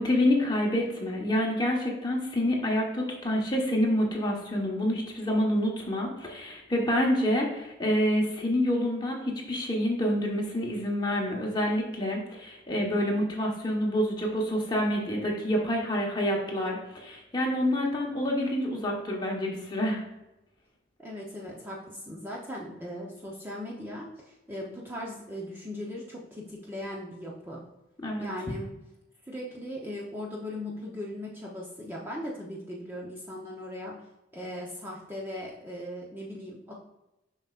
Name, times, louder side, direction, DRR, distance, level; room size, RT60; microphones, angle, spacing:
voice 1, 0.0-20.0 28.0-28.3, left 1 dB, 20° left, -1 dB, 1.2 m, -27 dB
voice 2, 21.0-27.6 28.2-28.7 29.2-34.0 34.3-36.7, left 1 dB, 10° right, -4 dB, 0.8 m, -38 dB
7.2 x 5.5 x 2.5 m, 0.95 s
head